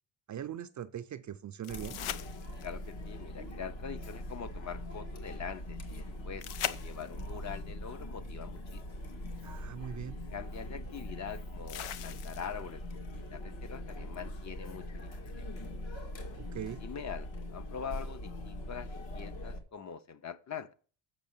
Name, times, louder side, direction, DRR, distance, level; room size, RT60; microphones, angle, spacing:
voice 1, 0.3-2.0 9.4-10.2 16.4-16.8, right 10 dB, 40° right, 0.4 m, -41 dB
sound 1, 1.6-2.9 6.4-7.4 9.3-9.4 11.7-12.7 15.6-15.7, left 11 dB, 85° left, 0.9 m, -40 dB
Chatter, 1.7-19.6, left 1 dB, 65° left, 2.0 m, -42 dB
voice 2, 2.6-8.8 10.3-15.4 16.8-20.7, left 7 dB, 35° left, 0.6 m, -44 dB
7.5 x 6.3 x 7.0 m
cardioid pair, 165°, 48 cm